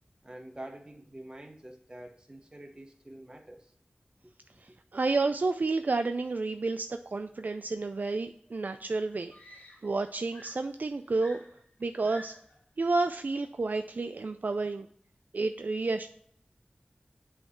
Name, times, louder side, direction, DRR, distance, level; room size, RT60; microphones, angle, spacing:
voice 1, 0.2-3.7 4.2-4.3, right 1 dB, 25° right, 2 dB, 1.3 m, -46 dB
voice 2, 4.6-9.3 9.8-11.4 11.8-12.3 12.8-14.9 15.3-16.1, right 3 dB, 60° right, 8 dB, 0.3 m, -30 dB
Screaming, 8.5-8.6 9.3-10.1 10.3-12.6 13.6-13.9, left 1 dB, 65° left, 1.9 m, -51 dB
7.7 x 3.2 x 5.7 m, 0.63 s
wide cardioid pair, 50°, 3 cm